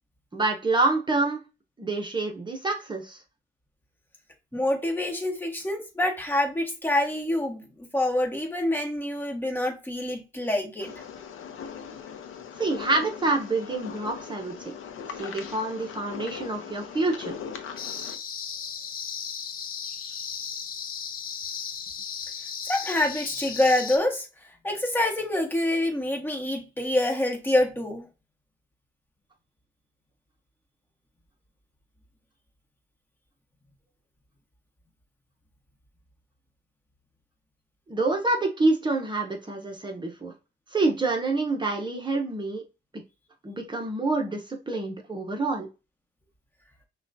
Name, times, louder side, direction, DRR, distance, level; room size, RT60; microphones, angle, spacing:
voice 1, 0.3-1.4 1.8-3.2 12.6-14.7 15.2-17.3 37.9-40.3 40.7-42.6 42.9-43.0 43.4-45.7, right 3 dB, 25° right, 0.9 m, -27 dB
voice 2, 4.5-7.6 7.9-10.9 22.6-24.3 24.6-28.1, left 1 dB, 10° left, 1.3 m, -26 dB
sound 1, 10.8-18.2, left 7 dB, 80° left, 0.7 m, -40 dB
sound 2, 17.8-24.0, left 7 dB, 45° left, 0.6 m, -35 dB
6.0 x 2.3 x 2.6 m
cardioid pair, 90°, 20 cm